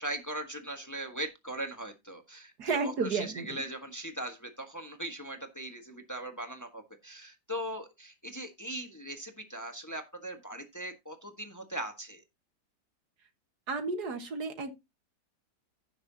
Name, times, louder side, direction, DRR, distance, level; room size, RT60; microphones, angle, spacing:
voice 1, 0.0-12.2, right 1 dB, 10° left, 1.3 m, -40 dB
voice 2, 2.6-3.6 13.7-14.7, right 4 dB, 75° right, 2.0 m, -32 dB
16.0 x 6.6 x 2.8 m
omnidirectional pair, 1.7 m